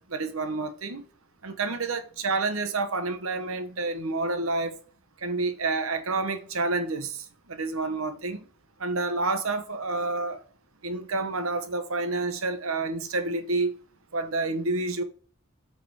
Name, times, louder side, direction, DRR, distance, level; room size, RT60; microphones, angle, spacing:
voice 1, 0.1-1.0 1.4-4.7 5.2-8.4 8.8-10.4 10.8-13.7 14.1-15.0, right 3 dB, 80° right, 1.2 m, -29 dB
8.3 x 4.8 x 4.8 m
head